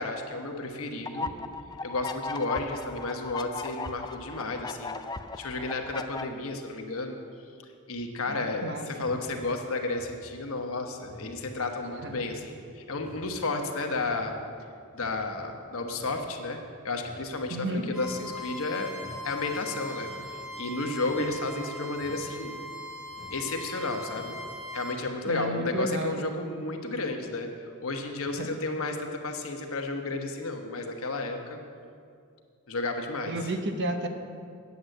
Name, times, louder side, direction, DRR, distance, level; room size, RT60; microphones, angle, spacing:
voice 1, 0.0-1.3 1.8-5.0 5.4-7.2 7.9-14.3 14.9-18.9 19.2-22.6 23.3-24.4 24.7-31.6 32.7-33.5, left 2 dB, 65° left, 3 dB, 1.2 m, -32 dB
sound 1, 1.1-6.2, left 4 dB, 20° left, 0.3 m, -37 dB
voice 2, 8.3-9.1 12.0-12.1 17.5-17.8 25.2-26.3 28.4-28.5 33.3-34.1, right 1 dB, 55° right, 6 dB, 1.0 m, -32 dB
sound 2, 9.0-9.3 9.9-10.2 11.0-11.3 11.9-12.2 12.9-13.3 13.9-14.3 14.9-15.2 15.9-16.2 17.0-17.3 18.0-18.3 19.0-19.2 20.0-20.3 21.0-21.3 22.0-22.3 23.1-23.4 24.0-24.4 25.0-25.1, equal, 80° right, 2.5 m, -49 dB
Bowed string instrument, 17.9-25.0, left 1 dB, 5° right, 1.4 m, -40 dB
9.6 x 7.8 x 7.8 m, 2.3 s
head